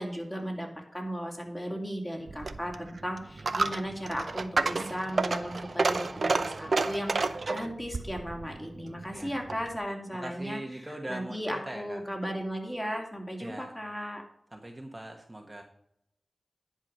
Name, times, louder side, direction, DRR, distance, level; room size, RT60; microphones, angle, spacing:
voice 1, 0.0-10.6 11.1-14.2, equal, 15° left, 1 dB, 2.7 m, -36 dB
Coin (dropping), 2.3-9.8, right 3 dB, 65° right, 0.7 m, -31 dB
voice 2, 9.1-9.4 10.1-12.0 13.4-13.7 14.5-15.6, right 1 dB, 20° right, 3 dB, 1.3 m, -41 dB
10.5 x 4.9 x 6.5 m, 0.75 s
wide cardioid pair, 65°, 0 cm